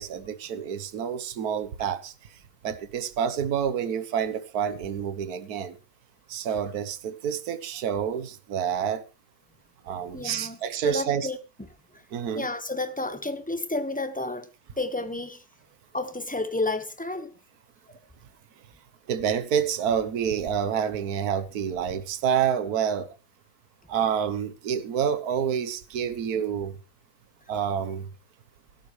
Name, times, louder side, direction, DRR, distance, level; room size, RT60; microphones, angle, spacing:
voice 1, 0.0-2.1 2.6-5.8 6.3-9.0 9.8-11.3 12.1-12.4 19.1-23.1 23.9-26.8 27.5-28.1, right 8 dB, 65° right, 1.6 m, -28 dB
voice 2, 10.1-11.4 11.9-12.0 12.3-14.5 14.8-15.4 15.9-17.3 17.9-18.0, left 2 dB, 5° left, 1.2 m, -31 dB
16.5 x 13.0 x 3.2 m
omnidirectional pair, 1.8 m